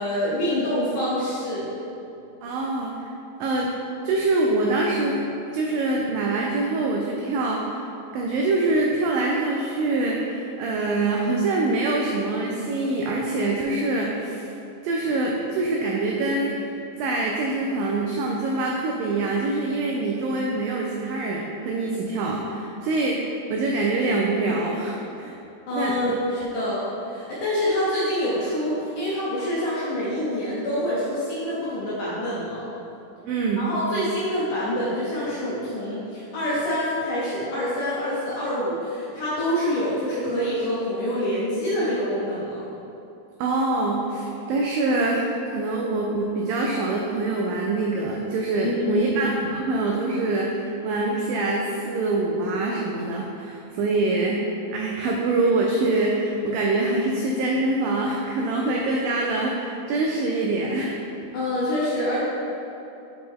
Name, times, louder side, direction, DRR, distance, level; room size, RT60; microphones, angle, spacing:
voice 1, 0.0-1.7 25.7-32.7 33.6-42.6 48.6-49.1 61.3-62.2, equal, 75° left, -8 dB, 1.9 m, -26 dB
voice 2, 2.4-3.1 3.4-3.7 4.0-5.3 5.5-7.8 8.1-14.5 14.8-16.7 17.0-25.3 25.7-25.9 33.3-33.7 43.4-54.4 54.7-61.0, right 2 dB, 90° right, -1 dB, 2.0 m, -24 dB
6.3 x 4.5 x 3.6 m, 2.9 s
omnidirectional pair, 4.6 m